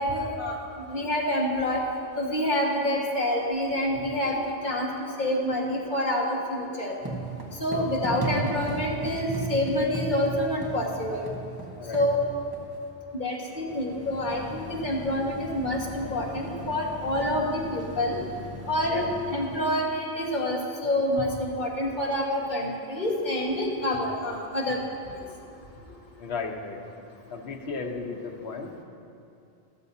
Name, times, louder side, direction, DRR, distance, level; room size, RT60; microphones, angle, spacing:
voice 1, 0.0-1.8 2.2-6.9 7.6-11.3 11.9-12.2 13.2-18.2 18.7-24.8, left 1 dB, 45° left, -2 dB, 1.8 m, -27 dB
sound 1, 7.0-12.8, right 3 dB, 20° right, 1.2 m, -34 dB
sound 2, 13.4-20.0, left 3 dB, 15° left, 0.9 m, -41 dB
voice 2, 26.2-26.8 27.3-28.8, left 4 dB, 75° left, 3 dB, 1.3 m, -35 dB
14.0 x 13.0 x 2.8 m, 2.7 s
omnidirectional pair, 1.1 m